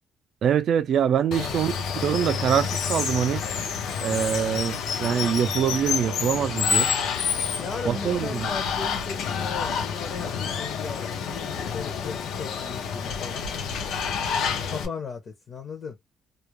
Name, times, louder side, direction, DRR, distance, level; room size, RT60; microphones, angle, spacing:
voice 1, 0.4-3.5 4.0-6.9 7.9-8.5, right 8 dB, 55° right, 0.3 m, -24 dB
Water, 1.3-14.9, left 6 dB, 85° left, 0.6 m, -28 dB
voice 2, 7.6-13.5 14.7-16.0, left 5 dB, 40° left, 0.6 m, -37 dB
2.3 x 2.0 x 2.9 m
cardioid pair, 170°, 0 cm